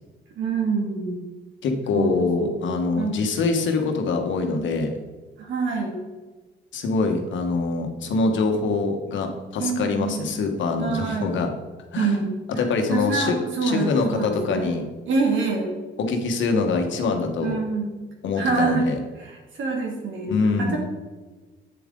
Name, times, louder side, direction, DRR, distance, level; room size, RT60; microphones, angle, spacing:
voice 1, 0.4-1.2 1.9-3.3 5.4-6.0 9.6-10.3 10.8-11.4 12.0-12.3 12.5-12.6 12.9-14.7 15.1-15.7 17.4-17.9 18.4-18.9 19.2-20.3 20.6-20.8, right 4 dB, 75° right, 0 dB, 2.4 m, -26 dB
voice 2, 1.6-4.9 6.7-11.5 11.9-12.2 12.6-14.8 16.0-17.6 18.2-19.0 20.3-20.8, left 4 dB, 70° left, 5 dB, 1.4 m, -24 dB
9.2 x 7.5 x 3.8 m, 1.3 s
cardioid pair, 90°, 20 cm